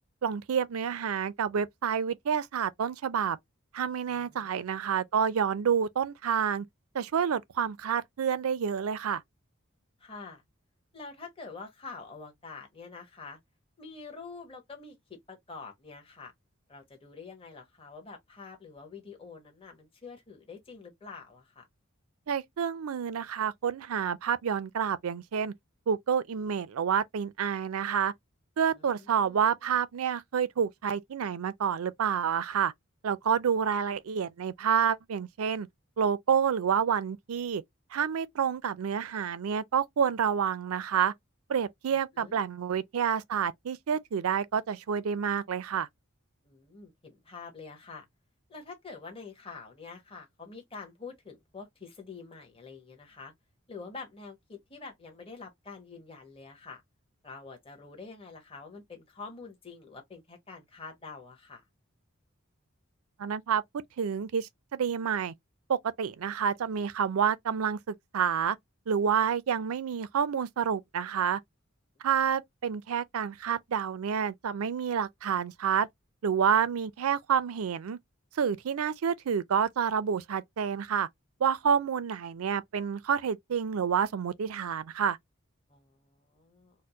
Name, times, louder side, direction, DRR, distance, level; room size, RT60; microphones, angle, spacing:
voice 1, 0.2-3.4 3.7-6.7 6.9-9.2 22.3-25.5 25.9-28.1 28.6-32.7 33.0-35.7 36.0-37.6 37.9-41.1 41.5-45.9 63.2-63.6 64.0-65.3 65.7-68.6 68.9-71.4 72.0-75.9 76.2-78.0 78.3-81.1 81.4-85.2, right 7 dB, 90° right, 0.4 m, -28 dB
voice 2, 4.1-4.9 10.0-10.4 10.9-13.4 13.8-16.3 16.7-21.7 28.7-29.5 42.1-42.4 46.4-48.0 48.5-53.3 53.7-56.8 57.2-61.6 72.0-72.1 85.7-86.7, left 4 dB, 25° left, 1.0 m, -46 dB
4.4 x 2.1 x 2.7 m
head